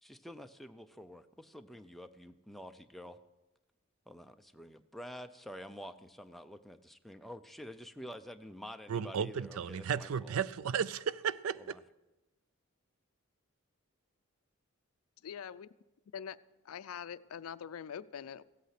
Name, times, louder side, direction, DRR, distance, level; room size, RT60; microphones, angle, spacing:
voice 1, 0.0-3.2 4.1-10.3 11.6-11.8, equal, ahead, 0.4 m, -48 dB
voice 2, 8.9-11.8, right 7 dB, 70° right, 0.4 m, -34 dB
voice 3, 15.2-15.7 16.1-16.4 16.6-18.4, left 8 dB, 75° left, 0.4 m, -43 dB
16.0 x 8.4 x 5.9 m
head